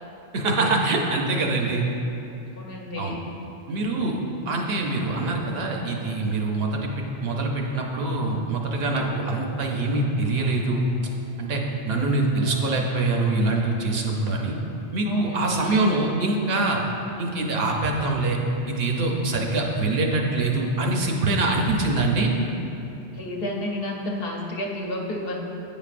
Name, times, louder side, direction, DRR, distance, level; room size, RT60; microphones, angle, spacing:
voice 1, 0.3-1.9 3.0-3.2 3.7-4.2 4.5-10.8 11.4-14.5 14.9-16.8 17.2-18.4 18.7-22.3, right 2 dB, 70° right, 1 dB, 0.9 m, -24 dB
voice 2, 2.6-3.2 15.1-15.7 23.1-25.4, left 1 dB, 65° left, -1 dB, 1.0 m, -30 dB
sound 1, 5.0-8.1 8.4-8.5 9.0-11.9 12.3-12.9, right 2 dB, 45° right, 0.5 m, -43 dB
9.0 x 5.2 x 2.5 m, 3.0 s
omnidirectional pair, 1.1 m